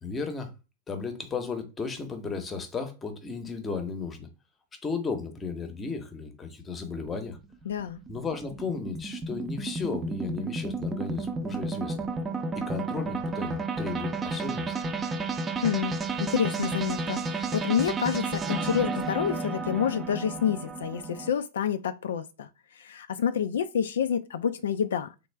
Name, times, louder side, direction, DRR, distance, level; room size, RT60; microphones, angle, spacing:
voice 1, 0.0-0.5 0.9-4.3 4.8-7.4 8.1-12.1 12.5-14.7, left 4 dB, 20° left, 0.8 m, -34 dB
sound 1, 7.1-21.3, right 3 dB, 20° right, 0.5 m, -32 dB
voice 2, 7.7-8.0 15.6-25.1, left 8 dB, 75° left, 0.3 m, -28 dB
3.2 x 2.3 x 3.3 m
hypercardioid pair, 110°, 0 cm